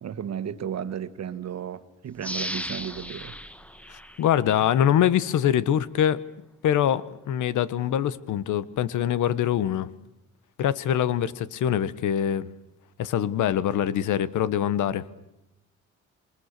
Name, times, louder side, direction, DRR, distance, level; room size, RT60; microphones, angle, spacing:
voice 1, 0.0-3.4 3.8-3.9, right 8 dB, 60° right, 1.6 m, -34 dB
sound 1, 2.2-4.9 5.3-5.4, equal, 5° left, 1.4 m, -36 dB
voice 2, 3.9-6.2 6.6-9.9 10.6-12.5 13.0-15.0, left 10 dB, 80° left, 1.4 m, -24 dB
27.0 x 25.0 x 6.8 m
cardioid pair, 90°, 30 cm